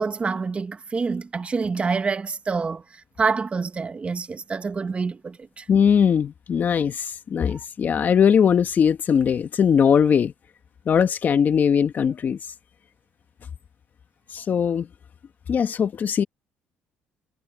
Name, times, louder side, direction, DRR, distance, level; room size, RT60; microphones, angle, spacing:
voice 1, 0.0-5.7 7.5-7.6, right 4 dB, 30° right, 1.7 m, -27 dB
voice 2, 5.7-10.3 10.9-12.4 14.3-14.9 15.5-16.2, left 7 dB, 45° left, 1.7 m, -20 dB
cardioid pair, 100°, 4 cm